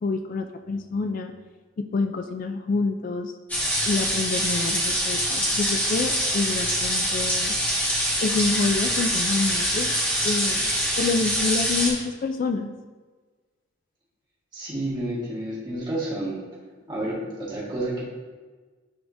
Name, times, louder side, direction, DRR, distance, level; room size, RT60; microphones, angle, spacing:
voice 1, 0.0-1.3 1.8-3.3 3.8-7.6 8.2-10.0 10.2-10.7 11.0-12.7, left 4 dB, 45° left, 6 dB, 0.3 m, -27 dB
sound 1, 3.5-11.9, equal, 10° left, 1.5 m, -24 dB
voice 2, 14.5-16.4 16.9-18.0, right 1 dB, 25° right, -7 dB, 1.8 m, -30 dB
10.0 x 3.5 x 2.6 m, 1.4 s
head